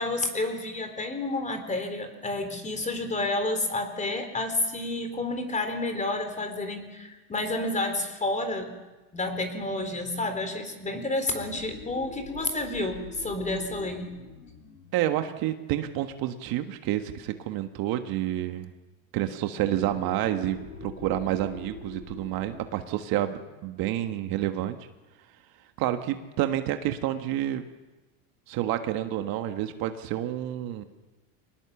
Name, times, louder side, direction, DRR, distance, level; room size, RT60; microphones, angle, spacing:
voice 1, 0.0-8.8 9.1-14.2, left 2 dB, 15° left, 7 dB, 3.8 m, -30 dB
sound 1, 11.2-16.5 19.5-24.8, left 5 dB, 85° left, 6.6 m, -45 dB
voice 2, 14.9-18.7 19.1-24.8 25.8-27.6 28.5-30.8, right 13 dB, 50° right, 7 dB, 1.6 m, -29 dB
24.5 x 19.5 x 7.2 m, 1.1 s
supercardioid pair, 115°, 45 cm